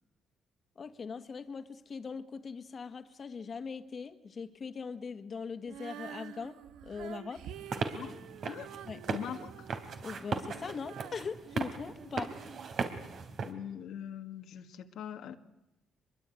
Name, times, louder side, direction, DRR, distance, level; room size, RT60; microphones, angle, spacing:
voice 1, 0.7-7.5 8.9-9.0 10.0-12.3, left 5 dB, 45° left, 9 dB, 1.7 m, -41 dB
Female singing, 5.6-12.7 13.3-13.4, right 10 dB, 85° right, 1.2 m, -49 dB
sound 1, 7.5-13.5, right 5 dB, 60° right, 3.4 m, -38 dB
voice 2, 7.7-8.2 8.4-8.7 9.1-9.7 13.4-15.4, left 9 dB, 80° left, 6 dB, 1.6 m, -42 dB
25.0 x 22.5 x 9.2 m, 0.93 s
cardioid pair, 90°, 0 cm